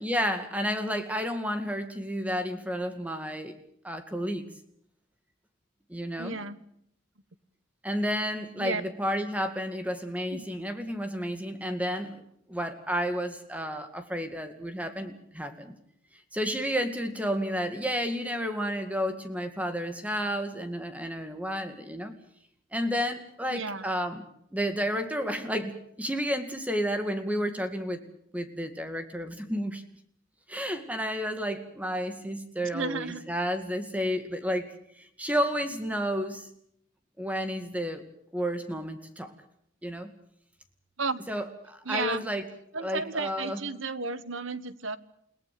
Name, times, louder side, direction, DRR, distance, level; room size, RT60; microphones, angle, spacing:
voice 1, 0.0-3.5 3.8-4.5 5.9-6.4 7.8-12.2 12.5-15.7 16.3-22.1 22.7-24.2 24.5-28.0 28.3-29.8 30.5-36.5 37.2-38.0 38.3-39.3 39.8-40.1 41.3-42.4 42.8-43.6, equal, 5° right, 8 dB, 2.2 m, -31 dB
voice 2, 6.2-6.6 8.6-8.8 10.3-10.5 23.5-23.9 32.7-33.2 41.0-41.2 41.8-42.2 42.7-45.0, right 4 dB, 75° right, 14 dB, 1.4 m, -33 dB
29.5 x 18.5 x 6.8 m, 0.71 s
head